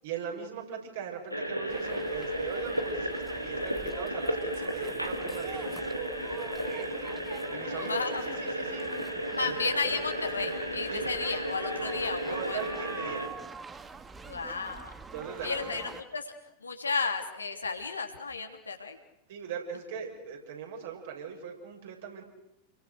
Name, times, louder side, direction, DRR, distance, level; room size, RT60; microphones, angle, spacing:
voice 1, 0.0-7.1 7.5-8.0 8.4-8.9 9.4-9.5 9.8-10.0 10.9-11.0 12.2-13.2 15.1-15.7 19.3-22.2, right 7 dB, 55° right, 2 dB, 6.6 m, -40 dB
sound 1, 1.3-13.3, equal, 90° right, 2.6 m, -34 dB
sound 2, 1.7-16.0, right 4 dB, 15° right, 1.6 m, -46 dB
voice 2, 7.7-8.2 9.4-12.6 14.2-14.9 15.4-16.3 16.6-19.0, left 4 dB, 75° left, 4 dB, 3.1 m, -33 dB
30.0 x 23.0 x 6.6 m, 0.82 s
figure-of-eight pair, 90°, 0 cm